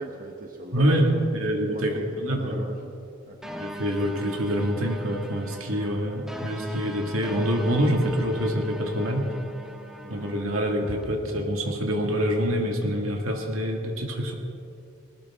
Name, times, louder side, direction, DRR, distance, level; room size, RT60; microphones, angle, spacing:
voice 1, 0.0-1.2 1.7-2.9 3.2-3.4 10.0-10.2, right 2 dB, 45° right, 1 dB, 1.2 m, -38 dB
voice 2, 0.7-2.6 3.6-9.3 10.1-14.3, equal, 70° right, 2 dB, 2.2 m, -26 dB
sound 1, 3.4-11.0, equal, ahead, 1.0 m, -39 dB
20.0 x 19.0 x 3.7 m, 2.6 s
head